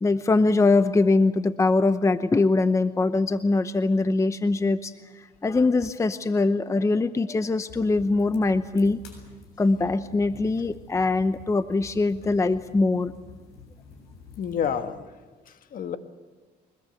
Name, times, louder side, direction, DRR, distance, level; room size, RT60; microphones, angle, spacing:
voice 1, 0.0-9.0 9.6-13.1, left 3 dB, 15° left, 12 dB, 0.8 m, -22 dB
sound 1, 7.7-14.7, left 4 dB, 90° left, 7.5 m, -48 dB
voice 2, 14.4-15.0 15.5-16.0, left 8 dB, 55° left, 9 dB, 1.7 m, -29 dB
24.0 x 21.0 x 8.0 m, 1.4 s
cardioid pair, 110°, 17 cm